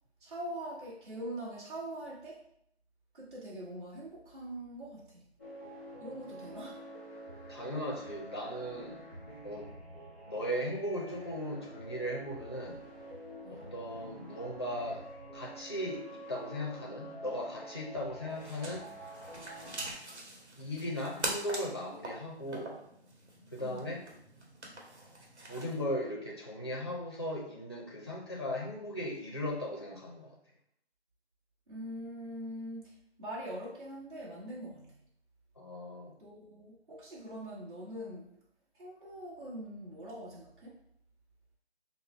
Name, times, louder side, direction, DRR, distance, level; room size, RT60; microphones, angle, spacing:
voice 1, 0.2-2.4 3.1-5.2 6.0-6.8 13.4-13.7 23.6-23.9 31.7-35.0 36.2-38.4 38.7-40.8, right 1 dB, 50° right, -7 dB, 1.6 m, -43 dB
sound 1, 5.4-19.9, right 1 dB, 15° right, 0.9 m, -48 dB
voice 2, 7.5-9.0 9.4-9.7 10.3-12.8 13.5-15.1 15.3-18.9 20.6-22.8 23.5-24.0 25.4-30.3 35.6-36.1, equal, 25° left, -2 dB, 0.5 m, -37 dB
sound 2, 18.3-25.8, right 1 dB, 80° right, 1.3 m, -43 dB
5.2 x 2.1 x 3.4 m, 0.73 s
figure-of-eight pair, 170°, 33 cm